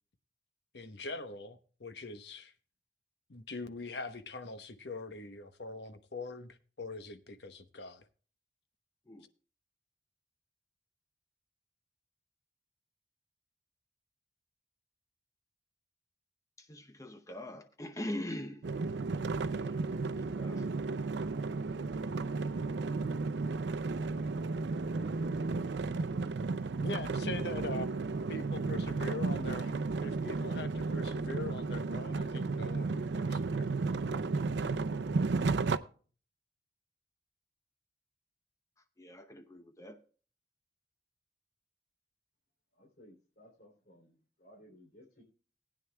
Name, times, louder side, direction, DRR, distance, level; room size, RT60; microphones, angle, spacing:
voice 1, 0.7-2.5 3.3-8.1 26.8-27.9 28.3-33.6, left 3 dB, 75° left, 1.0 m, -43 dB
voice 2, 16.6-18.6 19.5-19.8 20.1-20.7 27.8-27.9 39.0-40.0, left 1 dB, 20° left, 0.7 m, -42 dB
sound 1, 18.6-35.8, right 3 dB, 80° right, 0.5 m, -33 dB
voice 3, 42.7-45.2, equal, 60° left, 3.4 m, -59 dB
19.5 x 9.3 x 2.3 m
head